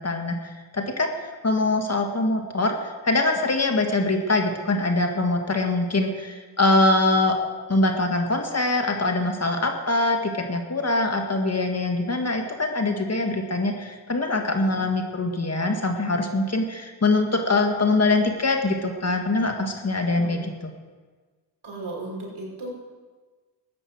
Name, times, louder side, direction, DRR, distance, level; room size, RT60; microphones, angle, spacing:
voice 1, 0.0-7.4 7.7-20.7, left 2 dB, 35° left, 4 dB, 2.0 m, -23 dB
voice 2, 20.1-20.5 21.6-22.7, right 2 dB, 60° right, -3 dB, 5.6 m, -36 dB
14.0 x 9.8 x 6.3 m, 1.4 s
cardioid pair, 55°, 45 cm